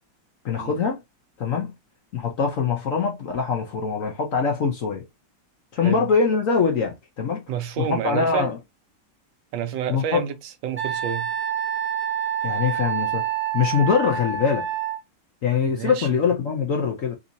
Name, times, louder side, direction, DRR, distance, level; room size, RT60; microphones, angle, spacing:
voice 1, 0.4-1.0 1.4-1.7 2.1-5.0 5.7-7.4 7.8-8.6 9.9-10.2 12.4-13.2 13.5-14.7 15.4-17.2, left 6 dB, 60° left, 0.9 m, -23 dB
voice 2, 5.8-6.1 7.5-8.5 9.5-11.3 15.7-16.2, right 8 dB, 80° right, 1.4 m, -29 dB
Wind instrument woodwind instrument, 10.8-15.0, right 9 dB, 15° right, 0.4 m, -27 dB
3.8 x 2.8 x 2.6 m
omnidirectional pair, 2.0 m